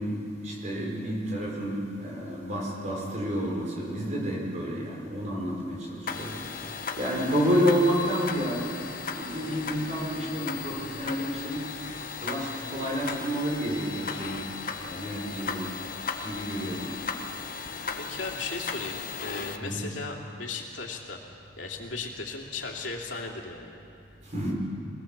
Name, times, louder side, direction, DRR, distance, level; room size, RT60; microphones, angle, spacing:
voice 1, 0.0-6.3 7.0-8.7 9.0-11.7 12.2-14.4 14.8-15.7 16.2-17.0 19.6-19.8 24.3-24.5, equal, 40° right, -2 dB, 5.1 m, -29 dB
sound 1, 6.1-19.6, left 5 dB, 45° left, 1.1 m, -36 dB
voice 2, 18.0-21.2 21.6-23.8, left 3 dB, 75° left, 0 dB, 2.9 m, -36 dB
22.5 x 19.0 x 7.4 m, 2.8 s
head